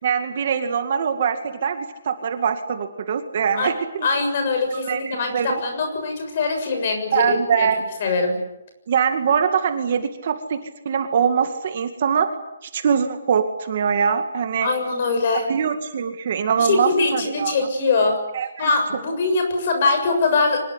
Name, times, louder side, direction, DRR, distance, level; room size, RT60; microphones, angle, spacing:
voice 1, 0.0-4.1 4.7-5.6 7.1-7.8 8.9-10.6 10.9-12.3 12.6-14.7 15.5-17.7 18.3-18.7, right 7 dB, 35° right, 7 dB, 2.1 m, -23 dB
voice 2, 4.0-7.7 8.0-8.4 14.6-15.5 16.6-18.2 18.6-20.6, left 3 dB, 35° left, 5 dB, 6.9 m, -22 dB
24.5 x 21.0 x 9.9 m, 0.90 s
hypercardioid pair, 175°, 0 cm